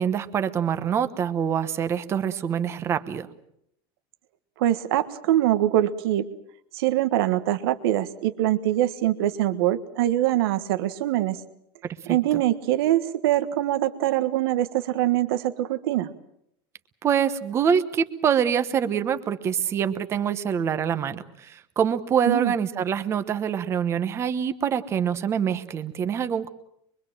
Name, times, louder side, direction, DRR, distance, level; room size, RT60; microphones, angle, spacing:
voice 1, 0.0-3.3 12.1-12.4 17.0-26.5, right 8 dB, 20° right, 11 dB, 1.1 m, -25 dB
voice 2, 4.6-6.3 6.7-11.4 12.1-16.1 22.3-22.5, right 13 dB, 85° right, 11 dB, 1.5 m, -23 dB
24.0 x 23.5 x 7.5 m, 0.74 s
cardioid pair, 175°, 12 cm